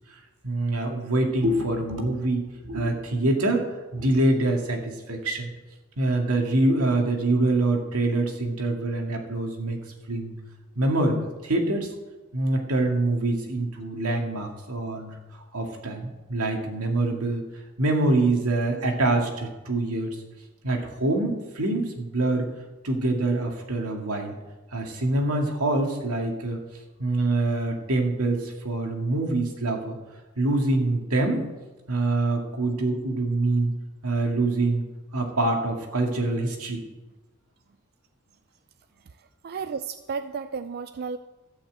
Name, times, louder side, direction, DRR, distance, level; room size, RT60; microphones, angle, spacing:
voice 1, 0.4-3.6 3.9-5.5 6.0-9.8 10.1-10.3 10.8-11.9 12.3-15.1 15.5-17.4 17.8-20.2 20.6-22.5 22.8-24.4 24.7-26.6 27.0-30.0 30.4-31.4 31.9-33.7 34.0-34.8 35.1-36.8, right 2 dB, 85° right, 1 dB, 2.1 m, -25 dB
voice 2, 39.4-41.2, right 5 dB, 45° right, 11 dB, 0.4 m, -33 dB
13.0 x 5.7 x 7.9 m, 1.1 s
head